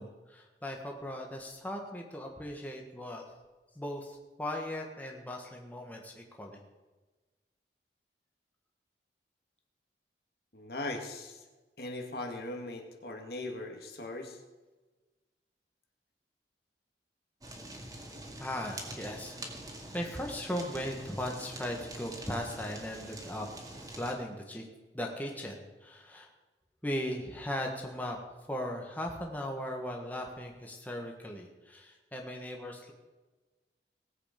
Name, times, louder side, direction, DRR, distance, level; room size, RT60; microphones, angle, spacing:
voice 1, 0.0-3.2 3.7-6.6 18.4-19.4 19.9-23.5 24.0-24.7 24.9-26.3 26.8-28.2 28.5-32.9, left 1 dB, 10° left, 1 dB, 1.5 m, -38 dB
voice 2, 10.5-11.4 11.8-14.4, left 2 dB, 60° left, 3 dB, 1.9 m, -39 dB
Fire, 17.4-24.1, right 1 dB, 20° right, 2.0 m, -45 dB
19.0 x 8.2 x 5.2 m, 1.2 s
head